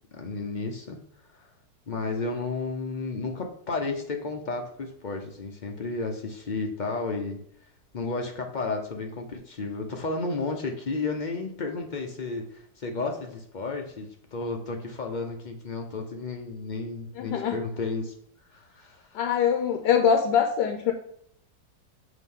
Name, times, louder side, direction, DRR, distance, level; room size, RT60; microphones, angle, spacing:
voice 1, 0.1-1.0 1.3-1.5 1.9-7.4 7.9-18.1 18.5-19.2, left 3 dB, 60° left, 3 dB, 0.4 m, -32 dB
voice 2, 17.2-17.6 19.1-20.9, left 7 dB, 80° left, 5 dB, 1.3 m, -23 dB
8.1 x 3.0 x 5.5 m, 0.68 s
omnidirectional pair, 1.9 m